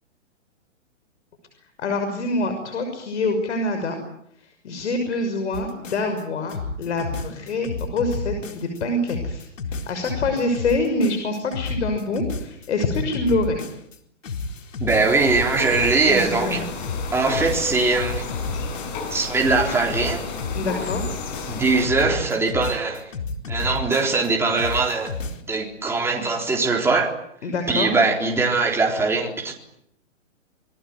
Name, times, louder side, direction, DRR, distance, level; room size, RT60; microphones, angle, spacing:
voice 1, 1.8-4.0 4.6-13.6 16.1-16.7 20.5-21.0 27.4-27.9, left 2 dB, 65° left, 6 dB, 6.2 m, -25 dB
sound 1, 5.5-6.2 6.5-8.8 9.1-14.0 14.2-16.6 16.8-19.1 19.4-24.3 24.6-25.4, left 4 dB, 80° left, 4.3 m, -31 dB
voice 2, 14.8-16.6 17.1-18.3 19.1-20.2 21.5-23.1 23.5-25.1 25.5-27.1 27.7-29.5, right 3 dB, 5° right, 0 dB, 3.8 m, -21 dB
sound 2, 14.9-21.8, left 5 dB, 35° left, 7.7 m, -32 dB
27.5 x 20.5 x 9.4 m, 0.71 s
hypercardioid pair, 150°, 38 cm